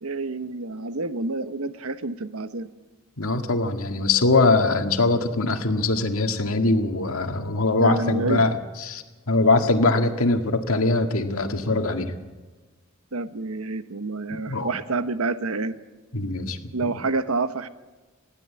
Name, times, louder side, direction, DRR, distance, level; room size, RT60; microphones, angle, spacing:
voice 1, 0.0-2.7 7.8-8.4 13.1-15.8 16.7-17.7, right 3 dB, 90° right, 12 dB, 1.0 m, -28 dB
voice 2, 3.2-12.1 14.3-14.7 16.1-16.7, left 2 dB, 90° left, 5 dB, 1.9 m, -22 dB
20.5 x 15.5 x 8.4 m, 1.3 s
head